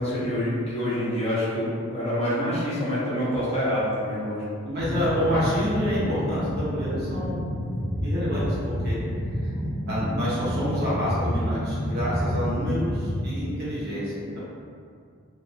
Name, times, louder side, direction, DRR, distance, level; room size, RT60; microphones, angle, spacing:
voice 1, 0.0-4.4, equal, 25° left, -9 dB, 0.7 m, -26 dB
voice 2, 4.6-7.5 8.0-9.0 9.3-9.5 9.9-14.4, equal, 45° right, -9 dB, 0.9 m, -28 dB
sound 1, 4.8-13.2, equal, 25° right, 0.8 m, -29 dB
2.6 x 2.5 x 2.7 m, 2.2 s
head